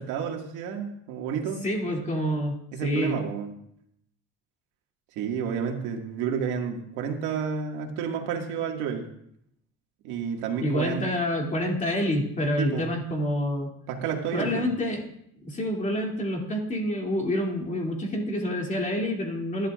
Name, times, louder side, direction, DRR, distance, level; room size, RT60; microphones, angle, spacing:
voice 1, 0.0-1.6 2.7-3.5 5.2-9.1 10.0-11.1 12.6-12.9 13.9-14.7, right 7 dB, 90° right, 2 dB, 2.1 m, -30 dB
voice 2, 1.6-3.2 10.6-13.7 14.3-15.0 15.4-19.7, left 1 dB, 25° left, 0 dB, 2.8 m, -27 dB
21.5 x 11.5 x 2.5 m, 0.72 s
cardioid pair, 140°, 29 cm